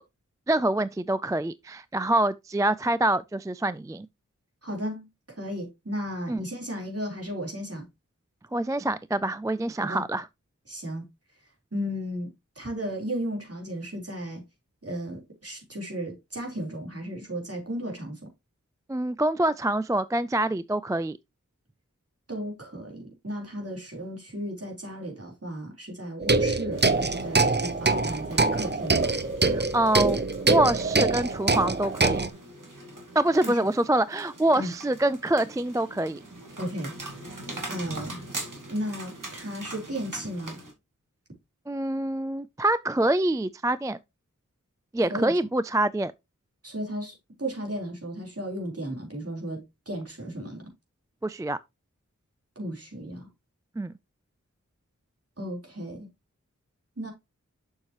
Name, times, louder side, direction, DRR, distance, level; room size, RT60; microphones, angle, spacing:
voice 1, 0.5-4.1 6.3-6.4 8.5-10.3 18.9-21.2 29.5-32.2 33.2-36.2 41.7-44.0 44.9-46.1 51.2-51.6 53.8-53.9, right 1 dB, 10° right, 0.3 m, -25 dB
voice 2, 4.6-5.1 5.4-7.8 9.8-10.0 10.7-11.0 11.7-12.3 12.6-14.4 14.8-18.2 22.3-29.0 33.4-33.6 34.6-34.7 36.6-36.9 37.7-38.2 38.7-40.6 45.1-45.3 46.6-50.7 52.6-53.3 55.4-56.1 57.0-57.1, equal, 50° right, 3.7 m, -34 dB
sound 1, 26.2-32.3, right 3 dB, 35° right, 0.7 m, -24 dB
sound 2, 26.7-40.7, right 2 dB, 80° right, 2.3 m, -42 dB
7.0 x 6.6 x 2.9 m
wide cardioid pair, 40°, 31 cm